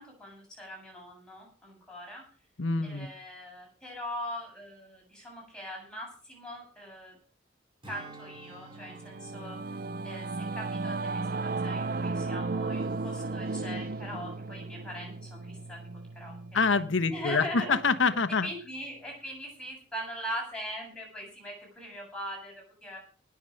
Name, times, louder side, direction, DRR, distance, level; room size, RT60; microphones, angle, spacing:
voice 1, 0.0-2.2 2.8-7.2 7.9-9.8 10.0-15.8 16.1-16.4 17.1-17.8 18.4-23.0, equal, 5° left, 7.7 m, -41 dB
voice 2, 2.6-3.1 16.5-18.5, left 4 dB, 85° left, 1.1 m, -26 dB
Strum, 7.8-12.5 12.9-13.1, right 2 dB, 25° right, 2.8 m, -53 dB
Singing / Musical instrument, 8.5-18.2, right 3 dB, 45° right, 0.6 m, -35 dB
20.0 x 7.2 x 6.4 m
head